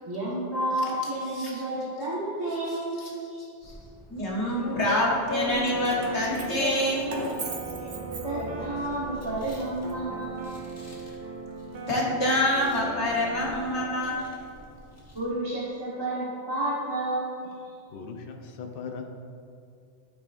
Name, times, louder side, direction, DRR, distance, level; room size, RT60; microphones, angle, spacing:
voice 1, 0.1-3.0 8.2-10.4 15.1-17.3 17.6-17.7, right 1 dB, 20° right, -10 dB, 1.2 m, -30 dB
voice 2, 1.3-1.7 2.7-3.7 4.1-7.0 11.8-14.2, left 1 dB, 75° left, -4 dB, 1.8 m, -27 dB
sound 1, 3.6-15.3, left 2 dB, 15° left, 0.9 m, -39 dB
sound 2, 5.5-14.2, right 5 dB, 50° right, 0.8 m, -40 dB
Keys jangling, 5.6-8.8 9.2-10.5, right 3 dB, 80° right, 1.2 m, -40 dB
voice 3, 17.9-19.2, left 5 dB, 55° left, 3 dB, 0.8 m, -39 dB
12.0 x 4.8 x 2.5 m, 2.4 s
omnidirectional pair, 1.2 m